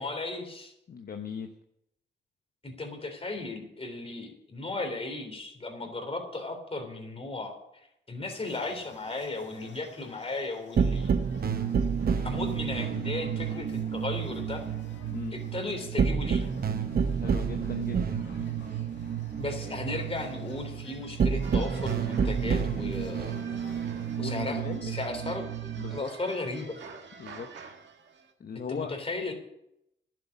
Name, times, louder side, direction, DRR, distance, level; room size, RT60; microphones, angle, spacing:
voice 1, 0.0-0.7 2.6-11.1 12.2-14.6 15.3-16.5 19.4-23.4 24.2-25.5 25.9-26.8 28.7-29.3, left 2 dB, 30° left, 4 dB, 3.4 m, -35 dB
voice 2, 0.9-1.5 15.1-15.4 17.2-18.1 24.2-24.9 25.8-26.1 27.2-27.5 28.4-28.9, left 6 dB, 50° left, 6 dB, 0.9 m, -38 dB
sound 1, 8.3-24.8, left 5 dB, 75° left, 2.3 m, -53 dB
sound 2, 10.8-26.0, right 6 dB, 55° right, 0.9 m, -30 dB
sound 3, 21.4-28.3, right 5 dB, 70° right, 1.7 m, -48 dB
11.5 x 7.8 x 8.1 m, 0.82 s
cardioid pair, 75°, 19 cm